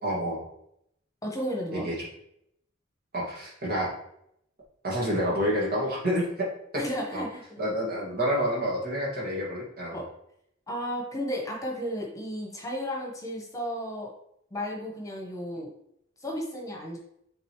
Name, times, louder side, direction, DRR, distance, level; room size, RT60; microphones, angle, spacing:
voice 1, 0.0-0.4 1.7-1.9 3.1-3.9 4.8-6.5 6.7-6.8 7.1-7.2 7.6-10.0, equal, 50° right, -5 dB, 2.3 m, -28 dB
voice 2, 1.2-1.9 6.7-7.6 9.9-10.1 10.7-14.1 14.5-15.7 16.2-17.0, equal, 15° left, -1 dB, 1.3 m, -33 dB
7.9 x 3.9 x 3.2 m, 0.74 s
head